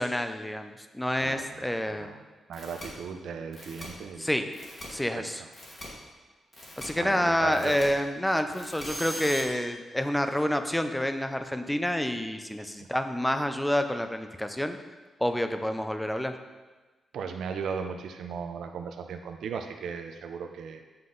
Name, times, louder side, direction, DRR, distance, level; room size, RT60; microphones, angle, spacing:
voice 1, 0.0-2.1 4.2-4.5 4.9-5.4 6.8-14.8 15.2-16.3, left 1 dB, 5° left, 8 dB, 0.4 m, -28 dB
voice 2, 1.2-1.6 2.0-2.2 2.5-4.4 5.2-5.5 7.0-7.8 12.8-12.9 17.1-20.8, right 6 dB, 75° right, 5 dB, 0.5 m, -37 dB
sound 1, 2.5-2.9 3.5-3.9 4.5-4.9 5.5-5.9 6.5-6.9 7.5-7.9 8.5-9.4, equal, 30° left, 1.6 m, -40 dB
7.7 x 5.6 x 3.8 m, 1.3 s
wide cardioid pair, 150°, 0 cm